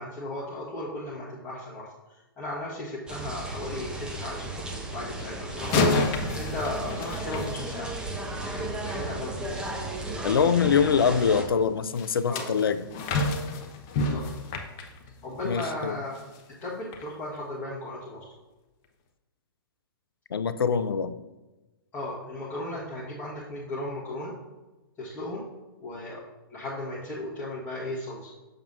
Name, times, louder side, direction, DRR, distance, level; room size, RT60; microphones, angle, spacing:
voice 1, 0.0-9.7 12.3-12.5 14.0-14.2 15.1-16.2 16.5-18.2 21.9-24.3 25.0-25.4 25.8-26.2 26.5-28.3, left 1 dB, 15° left, -8 dB, 1.3 m, -36 dB
sound 1, 3.1-11.4, right 2 dB, 5° right, 0.8 m, -35 dB
sound 2, 5.6-8.2 11.9-15.7 16.1-16.4 16.9-17.0, left 3 dB, 30° left, 0.8 m, -29 dB
voice 2, 10.2-12.8 15.4-16.0 20.3-21.2, left 6 dB, 70° left, 13 dB, 0.5 m, -24 dB
6.9 x 6.5 x 2.6 m, 1.1 s
figure-of-eight pair, 120°, 12 cm